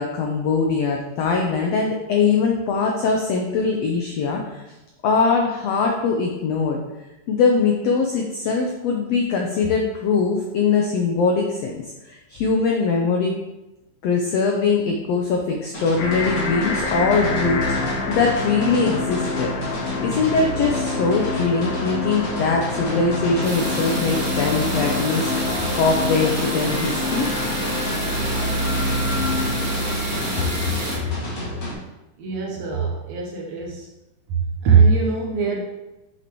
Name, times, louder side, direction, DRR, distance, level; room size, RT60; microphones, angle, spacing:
voice 1, 0.0-4.6 5.0-6.8 7.3-13.3 14.0-19.5 20.0-25.3 25.8-27.3, left 4 dB, 85° left, 1 dB, 1.4 m, -22 dB
sound 1, 15.7-31.7, equal, 35° left, 1.5 m, -32 dB
sound 2, 16.0-31.1, left 2 dB, 65° left, 2.3 m, -27 dB
sound 3, 23.4-31.0, right 2 dB, 35° right, 1.6 m, -29 dB
voice 2, 32.2-33.9 34.3-35.6, right 5 dB, 70° right, -1 dB, 1.8 m, -20 dB
8.3 x 6.1 x 3.0 m, 0.99 s
omnidirectional pair, 3.9 m